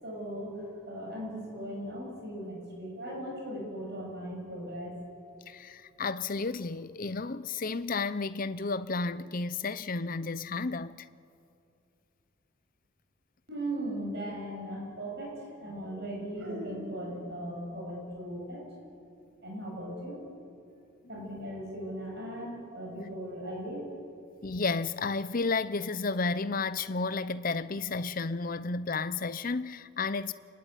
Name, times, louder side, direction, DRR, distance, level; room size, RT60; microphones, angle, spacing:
voice 1, 0.0-4.9 13.5-18.7 19.4-20.3 21.1-23.9, right 1 dB, 50° right, 7.4 m, -38 dB
voice 2, 5.5-11.0 24.4-30.3, left 4 dB, 40° left, 0.6 m, -32 dB
28.0 x 20.5 x 9.2 m
head